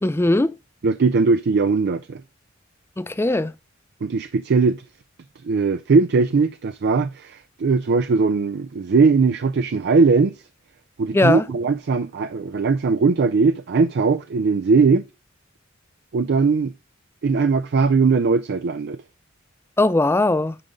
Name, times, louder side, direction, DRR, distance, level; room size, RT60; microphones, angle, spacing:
voice 1, 0.0-0.5 3.0-3.5 11.1-11.4 19.8-20.6, left 2 dB, 10° left, 0.4 m, -19 dB
voice 2, 0.8-2.2 4.0-4.8 5.4-10.4 11.0-15.0 16.1-16.7 17.2-19.0, right 4 dB, 55° right, 0.4 m, -19 dB
9.8 x 5.3 x 3.6 m
head